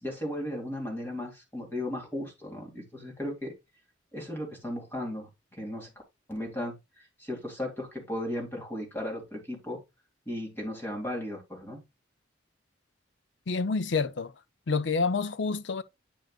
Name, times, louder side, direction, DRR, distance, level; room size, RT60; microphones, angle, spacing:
voice 1, 0.0-3.5 4.1-5.9 6.3-9.8 10.3-11.8, left 1 dB, 10° left, 2.3 m, -36 dB
voice 2, 13.5-14.3 14.7-15.8, left 4 dB, 70° left, 0.6 m, -28 dB
9.0 x 5.1 x 2.4 m
head